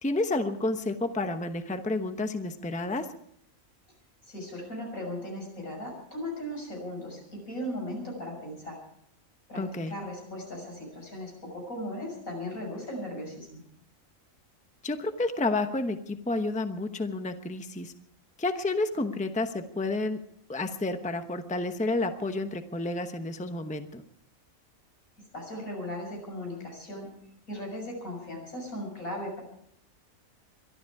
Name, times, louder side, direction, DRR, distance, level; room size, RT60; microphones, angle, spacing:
voice 1, 0.0-3.1 9.6-9.9 14.8-17.9 18.4-20.2 20.5-24.0, left 2 dB, 5° left, 7 dB, 0.9 m, -30 dB
voice 2, 4.2-8.8 9.5-13.6 25.3-27.1 27.5-29.4, left 1 dB, 85° left, 0 dB, 6.8 m, -37 dB
23.0 x 12.5 x 4.8 m, 0.70 s
omnidirectional pair, 1.4 m